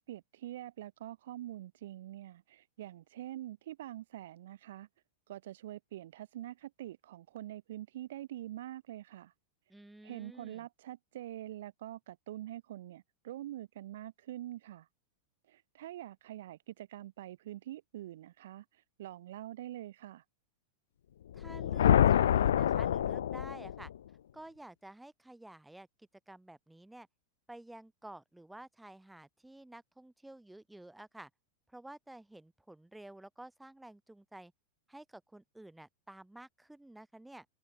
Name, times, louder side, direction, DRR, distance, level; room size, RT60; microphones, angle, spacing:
voice 1, 0.0-4.9 5.3-9.3 10.0-14.9 15.5-20.2, right 13 dB, 55° right, 1.9 m, -45 dB
voice 2, 9.7-10.7 21.3-23.9 24.3-27.1 27.5-31.3 31.7-34.5 34.9-37.5, right 1 dB, 5° right, 2.2 m, -51 dB
sound 1, 21.3-24.0, left 10 dB, 65° left, 0.3 m, -27 dB
open air
figure-of-eight pair, 90°, 0 cm